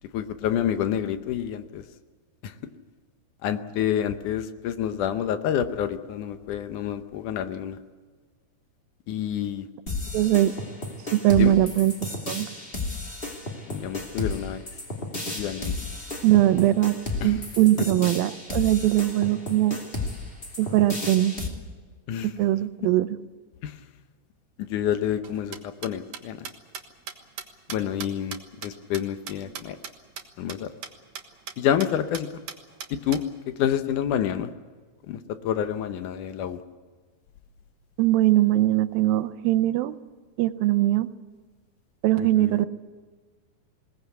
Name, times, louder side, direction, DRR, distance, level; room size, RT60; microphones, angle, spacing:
voice 1, 0.1-1.8 2.4-2.5 3.4-7.8 9.1-9.7 11.4-11.5 13.7-14.6 15.4-15.7 17.2-17.4 22.1-22.3 23.6-23.7 24.7-26.5 27.7-29.8 30.4-30.7 31.6-32.3 32.9-33.2 33.6-34.5 35.1-35.2 35.4-36.6 42.2-42.7, left 10 dB, 70° left, 10 dB, 2.3 m, -28 dB
sound 1, 9.9-21.5, left 2 dB, 15° left, 2.4 m, -33 dB
voice 2, 10.1-10.5 11.1-12.5 16.2-17.0 17.2-19.8 20.6-21.3 22.2-23.1 38.0-40.0 40.4-41.1 42.0-42.7, right 14 dB, 85° right, 13 dB, 2.5 m, -21 dB
sound 2, 25.2-29.9 30.2-30.3 30.5-30.6 30.8-30.9 31.2-31.5 31.8-31.9 32.1-33.2, right 8 dB, 60° right, 2.5 m, -37 dB
21.5 x 18.5 x 8.3 m, 1.5 s
omnidirectional pair, 4.1 m